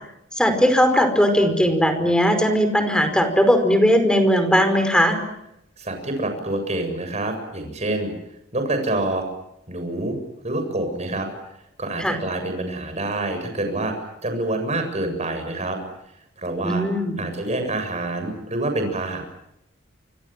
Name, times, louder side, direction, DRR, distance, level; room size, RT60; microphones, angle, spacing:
voice 1, 0.4-5.2 12.0-12.2 16.6-17.2, equal, 5° left, 8 dB, 5.0 m, -18 dB
voice 2, 5.8-8.1 8.5-9.3 9.7-10.2 10.4-11.3 11.8-13.9 14.2-15.8 16.4-16.8 17.2-19.2, right 2 dB, 35° right, 6 dB, 7.4 m, -26 dB
29.0 x 25.5 x 7.6 m, 0.84 s
head